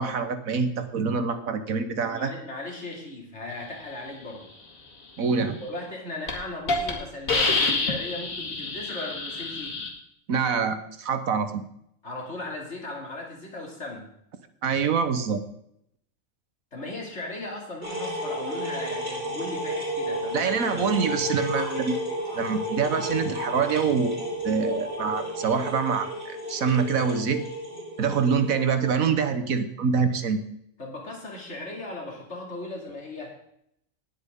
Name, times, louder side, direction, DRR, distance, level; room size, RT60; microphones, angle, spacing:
voice 1, 0.0-2.3 5.2-5.6 10.3-11.6 14.6-15.4 20.3-22.0 22.3-24.2 24.4-27.4 28.0-30.4, right 6 dB, 80° right, 9 dB, 1.5 m, -25 dB
voice 2, 2.0-4.5 5.6-9.8 12.0-14.1 16.7-20.6 30.8-33.4, left 2 dB, 55° left, -1 dB, 3.1 m, -37 dB
Hiss, 5.7-5.9 6.3-6.4 6.7-6.9 7.3-9.9, left 3 dB, 75° left, 2.4 m, -27 dB
sound 1, 17.8-28.9, equal, 40° right, 6.2 m, -32 dB
19.0 x 8.1 x 3.7 m, 0.73 s
omnidirectional pair, 1.4 m